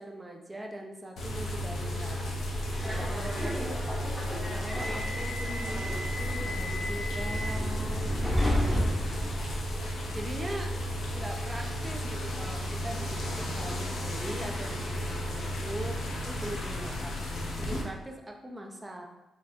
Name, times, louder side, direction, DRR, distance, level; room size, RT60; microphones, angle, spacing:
voice 1, 0.0-2.4 2.8-3.9 4.5-8.4 8.6-9.0 10.1-10.8 11.1-19.1, right 1 dB, 15° right, 2 dB, 0.7 m, -41 dB
sound 1, 1.2-17.8, equal, 75° left, 0.9 m, -34 dB
Subway metro underground, 2.3-9.9, equal, ahead, 1.5 m, -32 dB
4.5 x 4.1 x 2.5 m, 0.97 s
cardioid pair, 75°, 0 cm